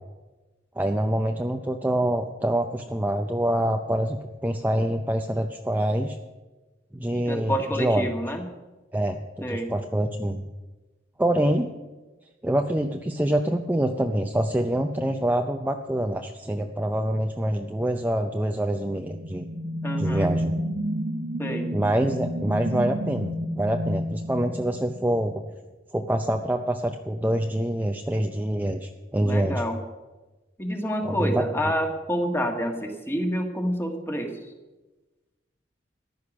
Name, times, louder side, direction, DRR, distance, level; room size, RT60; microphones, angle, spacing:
voice 1, 0.8-6.2 6.9-8.1 8.9-10.4 11.2-11.7 12.4-19.4 20.0-20.5 21.7-25.4 25.9-29.6 31.0-31.4, right 1 dB, 10° right, 4 dB, 0.6 m, -26 dB
voice 2, 7.1-8.4 9.4-9.7 19.8-20.3 21.4-21.7 29.2-29.8 30.6-34.4, equal, 15° left, 4 dB, 1.7 m, -28 dB
sound 1, 18.7-25.3, equal, 65° right, 1.0 m, -30 dB
14.5 x 10.5 x 6.1 m, 1.1 s
head